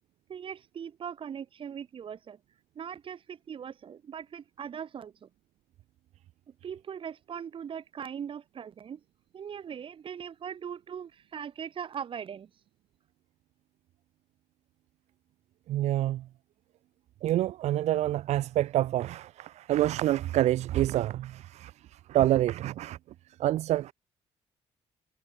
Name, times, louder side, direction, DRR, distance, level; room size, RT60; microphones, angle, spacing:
voice 1, 0.3-2.4 2.7-5.3 6.6-9.0 9.3-12.5, right 8 dB, 50° right, 3.2 m, -40 dB
voice 2, 15.7-16.3 17.2-23.0 23.4-23.9, right 14 dB, 80° right, 1.0 m, -27 dB
cardioid pair, 110°, 11 cm